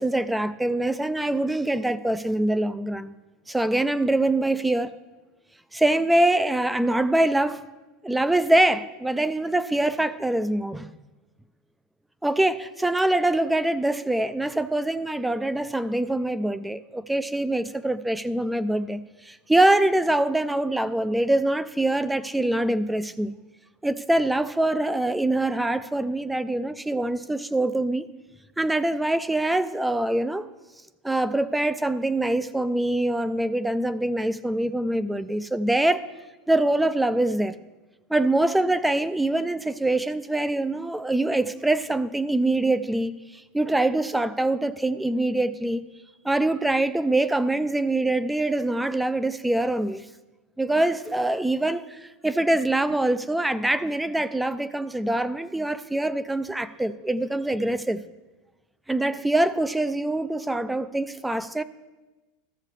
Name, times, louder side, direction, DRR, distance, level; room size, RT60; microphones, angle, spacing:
voice 1, 0.0-3.1 3.5-4.9 5.7-7.7 8.0-10.9 12.2-23.3 23.8-28.1 28.6-30.5 31.0-36.1 36.5-37.5 38.1-45.9 46.2-50.0 50.6-58.0 58.9-61.6, right 1 dB, 5° right, 0.4 m, -24 dB
14.0 x 6.6 x 3.3 m
supercardioid pair, 115°, 0 cm